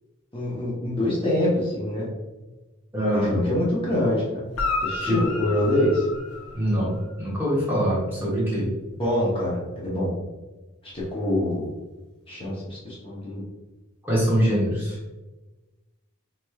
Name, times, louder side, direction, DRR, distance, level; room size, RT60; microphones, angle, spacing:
voice 1, 0.3-2.1 3.1-4.2 4.8-6.1 9.0-10.1 10.9-11.7 12.3-13.4, left 1 dB, 25° left, -7 dB, 0.7 m, -25 dB
voice 2, 2.9-3.4 5.0-5.2 6.5-8.7 14.0-15.0, equal, 10° right, -7 dB, 1.0 m, -24 dB
Guitar, 4.5-7.1 10.9-11.0, left 3 dB, 80° left, 0.7 m, -31 dB
4.4 x 3.1 x 2.3 m, 1.2 s
head